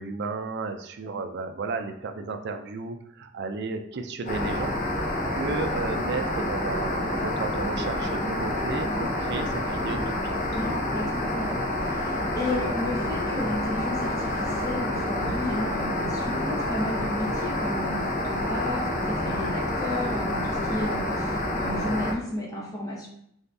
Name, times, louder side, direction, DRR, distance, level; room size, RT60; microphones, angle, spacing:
voice 1, 0.0-4.7 5.3-10.4, right 3 dB, 60° right, 6 dB, 0.4 m, -33 dB
sound 1, 4.3-22.1, left 1 dB, 45° left, 0.8 m, -28 dB
voice 2, 10.5-23.1, left 1 dB, 20° left, -5 dB, 1.0 m, -33 dB
3.9 x 2.7 x 3.4 m, 0.72 s
head